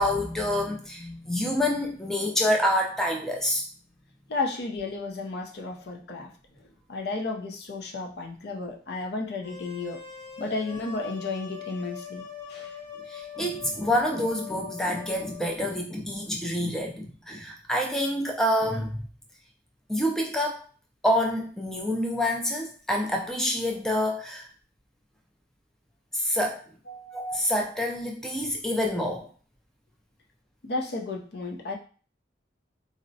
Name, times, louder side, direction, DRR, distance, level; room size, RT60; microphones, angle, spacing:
voice 1, 0.0-3.6 13.1-19.0 19.9-20.6 21.0-24.5 26.1-26.6 27.1-29.3, left 1 dB, 5° left, 0 dB, 0.3 m, -27 dB
voice 2, 4.3-6.3 6.6-10.0 10.4-12.2 12.5-12.8 26.9-27.2 30.6-31.8, left 3 dB, 60° left, 2 dB, 0.5 m, -33 dB
sound 1, 9.4-15.6, left 6 dB, 35° left, 1.0 m, -42 dB
3.8 x 2.1 x 2.6 m, 0.41 s
head